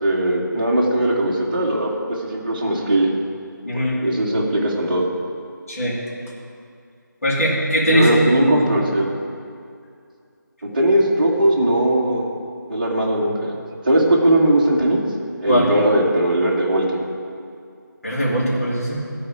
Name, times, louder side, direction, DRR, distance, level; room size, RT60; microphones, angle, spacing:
voice 1, 0.0-3.1 3.7-5.0 7.9-9.1 10.7-12.3 12.7-13.5 13.8-15.0 15.4-17.0, right 1 dB, 25° right, -6 dB, 1.7 m, -19 dB
voice 2, 3.6-4.0 5.7-6.0 7.2-8.8 15.5-15.7 18.0-19.0, equal, 45° left, -7 dB, 3.2 m, -20 dB
14.5 x 4.8 x 9.0 m, 2.3 s
figure-of-eight pair, 180°, 11 cm